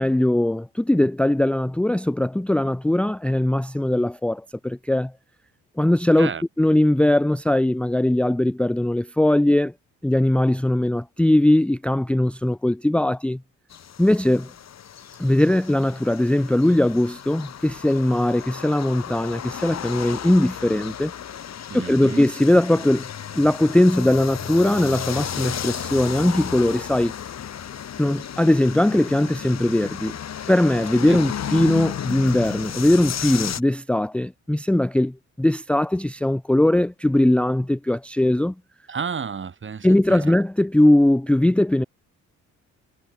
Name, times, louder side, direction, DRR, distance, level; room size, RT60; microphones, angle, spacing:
voice 1, 0.0-5.1 5.8-6.3 6.6-9.7 10.0-13.4 14.0-14.5 15.2-21.1 21.7-23.1 23.3-27.1 28.0-30.2 30.5-38.5 39.8-41.8, left 1 dB, 5° left, 0.6 m, -20 dB
sound 1, 13.7-33.6, left 9 dB, 60° left, 6.3 m, -33 dB
voice 2, 21.7-22.2 31.1-31.2 38.9-40.3, right 6 dB, 40° right, 3.8 m, -31 dB
cardioid pair, 90°, 30 cm